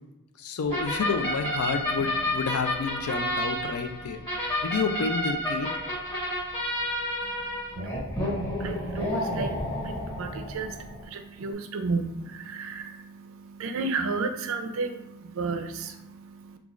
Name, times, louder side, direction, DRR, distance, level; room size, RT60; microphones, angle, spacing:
voice 1, 0.4-4.2 4.6-5.7, left 5 dB, 90° left, 7 dB, 0.4 m, -29 dB
sound 1, 0.7-11.0, left 1 dB, 25° left, 1.2 m, -30 dB
voice 2, 7.2-16.6, right 3 dB, 70° right, 6 dB, 0.4 m, -34 dB
3.6 x 2.3 x 3.0 m, 0.94 s
head